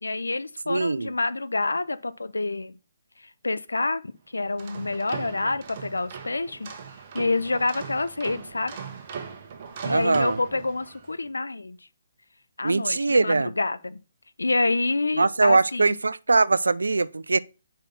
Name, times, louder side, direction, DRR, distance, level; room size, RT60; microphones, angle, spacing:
voice 1, 0.0-2.8 3.2-6.7 7.1-8.8 9.8-11.8 12.6-14.0 14.4-16.0, left 3 dB, 80° left, 0.5 m, -27 dB
voice 2, 0.7-1.1 9.9-10.4 12.6-13.5 15.1-17.4, right 3 dB, 75° right, 0.4 m, -22 dB
sound 1, 4.4-11.1, right 6 dB, 40° right, 1.1 m, -39 dB
5.3 x 4.2 x 5.6 m
figure-of-eight pair, 135°, 0 cm